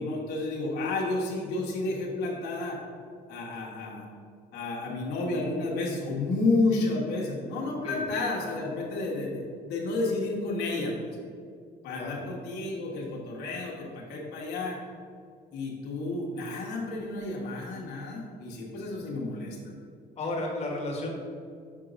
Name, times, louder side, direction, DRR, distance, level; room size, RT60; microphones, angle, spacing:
voice 1, 0.0-2.8 3.3-4.0 4.5-9.4 9.7-10.9 11.8-14.8 15.5-19.7, left 2 dB, 80° left, -3 dB, 1.4 m, -31 dB
voice 2, 20.2-21.1, left 2 dB, 40° left, -1 dB, 1.3 m, -33 dB
6.7 x 3.8 x 5.1 m, 2.2 s
cardioid pair, 110°, 17 cm